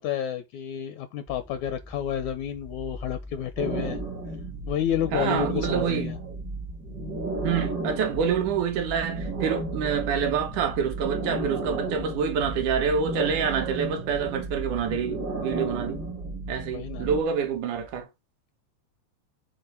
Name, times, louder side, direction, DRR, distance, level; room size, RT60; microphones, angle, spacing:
voice 1, 0.0-4.0 4.7-6.2 16.7-17.1, left 9 dB, 75° left, 1.8 m, -30 dB
sound 1, 1.3-18.0, left 2 dB, ahead, 0.6 m, -43 dB
sound 2, 3.6-17.2, right 3 dB, 55° right, 1.2 m, -33 dB
voice 2, 5.1-6.1 7.4-16.0 16.5-18.1, right 7 dB, 70° right, 2.3 m, -27 dB
7.9 x 4.0 x 4.3 m
omnidirectional pair, 3.9 m